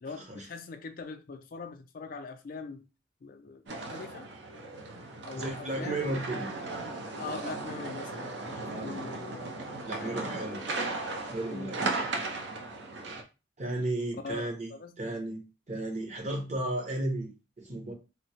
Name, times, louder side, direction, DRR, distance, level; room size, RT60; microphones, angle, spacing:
voice 1, 0.0-2.9 3.2-4.3 5.3-6.4 7.2-9.6 10.0-10.5 11.5-11.8 14.2-15.2, left 4 dB, 50° left, 0.4 m, -43 dB
sound 1, 3.7-13.2, right 3 dB, 65° right, 0.6 m, -36 dB
voice 2, 5.3-6.5 8.7-9.0 9.8-10.6 11.3-12.1 13.6-14.7 15.0-15.4 15.7-17.9, right 1 dB, 40° right, 0.9 m, -34 dB
3.5 x 2.0 x 2.9 m
head